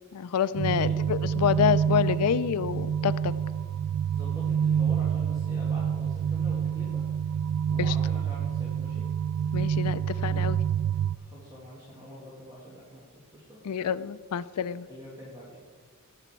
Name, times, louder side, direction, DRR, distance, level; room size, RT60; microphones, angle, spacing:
voice 1, 0.1-3.3 7.8-7.9 9.5-10.6 13.6-14.9, left 8 dB, 80° left, 14 dB, 0.4 m, -27 dB
sound 1, 0.5-11.2, right 8 dB, 70° right, 0.3 m, -27 dB
voice 2, 4.1-7.0 7.7-9.0 10.3-10.5 11.2-13.0 13.3-13.6 14.9-15.7, equal, 15° right, -7 dB, 2.4 m, -45 dB
18.0 x 7.0 x 4.4 m, 1.5 s
head